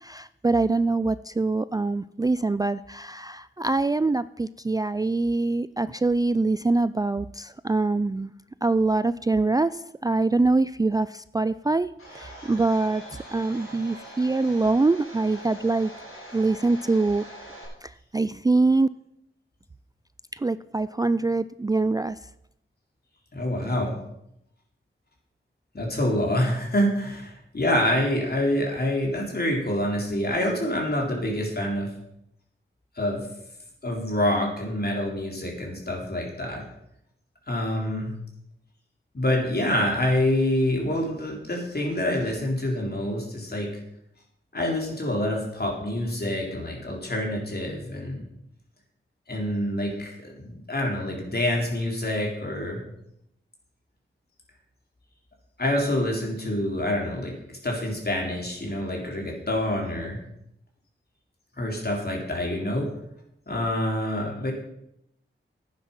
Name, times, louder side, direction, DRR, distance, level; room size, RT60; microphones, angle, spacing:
voice 1, 0.0-8.3 8.6-15.9 16.3-17.2 17.8-18.9 20.3-22.2, right 3 dB, 20° right, 15 dB, 0.3 m, -24 dB
Domestic sounds home sounds, 12.0-17.7, right 1 dB, 85° left, 5.6 m, -43 dB
voice 2, 23.3-24.0 25.7-31.9 33.0-33.2 33.8-36.6 37.5-38.1 39.1-43.7 44.5-48.2 49.3-52.8 55.6-57.3 57.6-60.2 61.6-62.9 63.5-64.5, left 1 dB, 50° left, -1 dB, 3.8 m, -26 dB
11.5 x 9.5 x 5.5 m, 0.78 s
wide cardioid pair, 60°, 21 cm